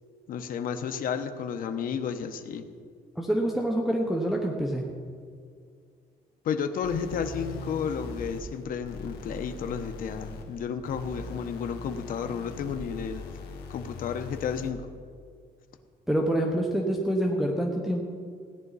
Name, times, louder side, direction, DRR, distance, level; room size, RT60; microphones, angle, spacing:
voice 1, 0.3-2.6 6.4-13.4 13.7-14.8, left 7 dB, 60° left, 8 dB, 0.9 m, -32 dB
voice 2, 3.2-4.8 16.1-18.0, right 1 dB, ahead, -1 dB, 0.9 m, -26 dB
sound 1, 6.8-14.8, left 2 dB, 80° left, 1.7 m, -41 dB
17.0 x 10.5 x 4.1 m, 2.1 s
cardioid pair, 145°, 16 cm